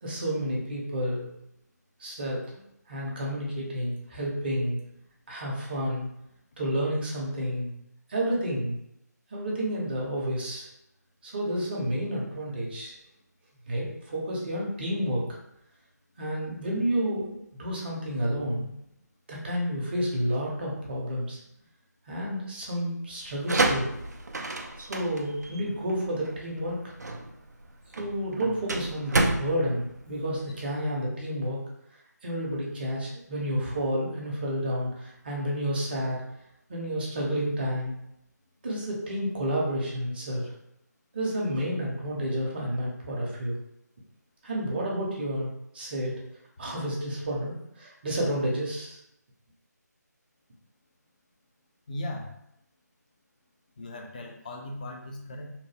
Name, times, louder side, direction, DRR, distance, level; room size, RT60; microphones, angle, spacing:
voice 1, 0.0-1.3 2.0-2.4 2.9-4.8 5.3-6.1 6.6-7.7 8.1-8.8 9.3-10.7 11.2-12.9 13.7-15.2 16.2-18.7 19.3-21.4 22.1-23.9 24.8-26.8 28.0-31.6 32.2-36.2 36.7-37.9 38.6-40.5 41.1-43.6 44.4-45.5 45.7-46.2 46.6-49.0, equal, 35° right, -3 dB, 0.7 m, -30 dB
sound 1, 23.2-30.8, right 2 dB, 65° right, 0.4 m, -30 dB
voice 2, 51.9-52.3 53.8-55.5, left 1 dB, 25° left, 1 dB, 0.4 m, -37 dB
2.8 x 2.0 x 3.3 m, 0.79 s
figure-of-eight pair, 155°, 10 cm